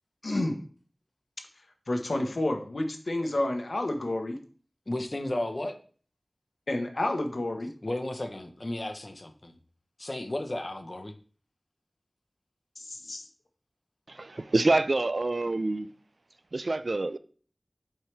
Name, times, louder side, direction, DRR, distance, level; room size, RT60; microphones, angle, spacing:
voice 1, 0.2-0.6 1.9-4.4 6.7-7.7 12.8-13.2, left 1 dB, 80° left, 1.0 m, -30 dB
voice 2, 4.9-5.8 7.8-9.5 10.0-11.2, left 1 dB, 45° left, 0.8 m, -33 dB
voice 3, 14.1-15.9 16.5-17.2, right 2 dB, 65° right, 0.4 m, -26 dB
7.6 x 4.6 x 3.3 m
wide cardioid pair, 55°, 0 cm